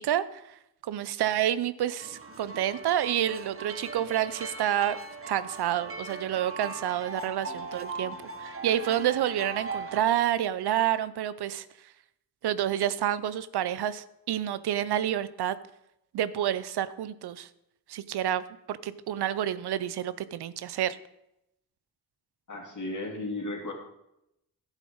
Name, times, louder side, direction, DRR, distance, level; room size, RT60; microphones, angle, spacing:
voice 1, 0.0-5.0 5.3-11.7 12.4-15.6 16.1-17.5 17.9-21.0, right 11 dB, 85° right, 16 dB, 0.6 m, -29 dB
sound 1, 2.0-10.0, right 3 dB, 35° right, 1.2 m, -39 dB
voice 2, 22.5-23.7, left 2 dB, 50° left, 1 dB, 2.8 m, -34 dB
11.5 x 8.3 x 5.4 m, 0.84 s
cardioid pair, 60°, 38 cm